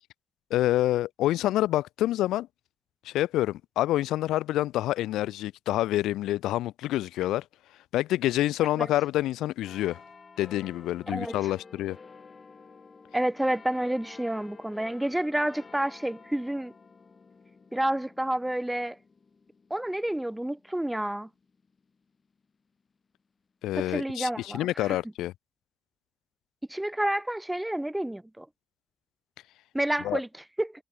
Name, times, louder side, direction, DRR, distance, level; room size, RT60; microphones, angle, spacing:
voice 1, 0.5-2.5 3.0-7.4 7.9-10.0 10.4-12.0 23.6-25.3 30.0-30.2, left 14 dB, 75° left, 1.1 m, -27 dB
sound 1, 9.6-22.5 23.1-23.2, left 4 dB, 40° left, 2.5 m, -52 dB
voice 2, 11.1-11.4 13.1-16.7 17.7-19.0 19.7-21.3 23.8-25.0 26.7-28.5 29.7-30.3 30.6-30.7, right 1 dB, 10° right, 1.8 m, -29 dB
hypercardioid pair, 45°, 0 cm